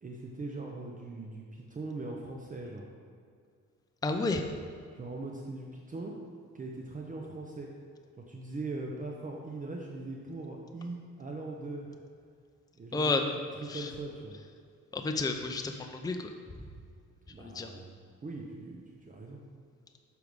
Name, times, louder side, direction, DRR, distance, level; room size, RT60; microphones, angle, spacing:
voice 1, 0.0-2.9 4.9-6.1 6.5-7.7 8.3-12.0 12.8-14.4 17.3-19.4, right 2 dB, 25° right, 0 dB, 0.8 m, -41 dB
voice 2, 4.0-4.4 12.9-13.2 13.7-13.9 14.9-16.3 17.4-17.7, left 3 dB, 15° left, 5 dB, 0.5 m, -31 dB
6.7 x 4.7 x 5.1 m, 2.2 s
cardioid pair, 90°, 30 cm